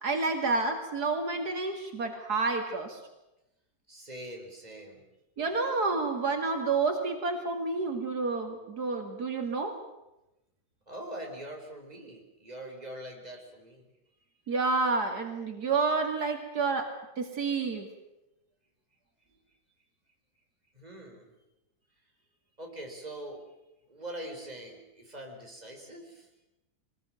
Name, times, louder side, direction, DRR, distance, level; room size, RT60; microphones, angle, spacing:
voice 1, 0.0-3.0 5.4-9.7 14.5-16.9 17.2-17.9, right 3 dB, 80° right, 5 dB, 2.9 m, -29 dB
voice 2, 3.9-5.0 10.9-13.9 20.7-21.3 22.6-23.4 23.9-26.3, right 1 dB, 25° right, 1 dB, 5.0 m, -43 dB
23.0 x 20.0 x 9.2 m, 0.92 s
omnidirectional pair, 1.7 m